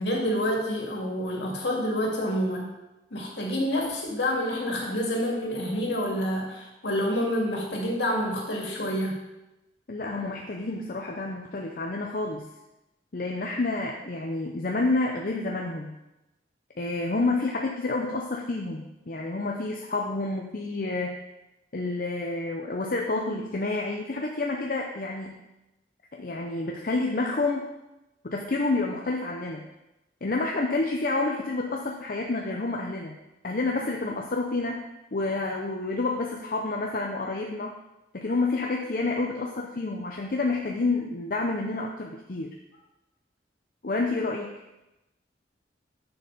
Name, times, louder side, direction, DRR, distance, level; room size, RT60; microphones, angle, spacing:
voice 1, 0.0-2.7 3.1-9.2, equal, 70° left, -2 dB, 2.5 m, -28 dB
voice 2, 9.9-12.5 13.1-16.0 16.8-21.2 21.7-25.4 26.1-27.7 28.2-29.7 30.2-33.2 33.4-34.8 35.1-37.8 38.1-42.6 43.8-44.6, left 3 dB, 50° left, 1 dB, 0.7 m, -29 dB
10.0 x 6.9 x 4.1 m, 0.97 s
head